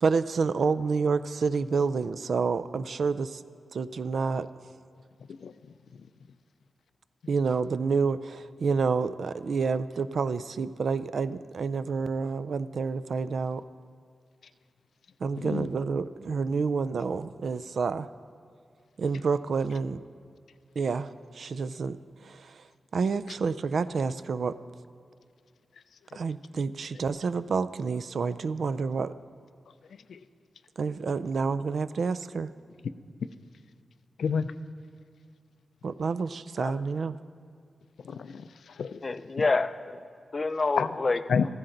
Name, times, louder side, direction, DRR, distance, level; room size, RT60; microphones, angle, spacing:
voice 1, 0.0-3.4 3.7-4.5 7.3-13.6 15.2-18.1 19.0-20.0 20.8-22.0 22.2-22.6 22.9-24.6 26.1-29.1 30.8-32.5 35.8-37.2, right 5 dB, 60° right, 14 dB, 0.4 m, -29 dB
voice 2, 15.4-15.7 30.1-30.2 34.2-34.5 38.0-39.0 40.8-40.9 41.3-41.5, left 6 dB, 90° left, 12 dB, 0.4 m, -29 dB
voice 3, 39.0-40.0 40.3-41.2, left 3 dB, 30° left, 12 dB, 0.4 m, -27 dB
15.0 x 14.5 x 3.9 m, 2.2 s
wide cardioid pair, 165°, 0 cm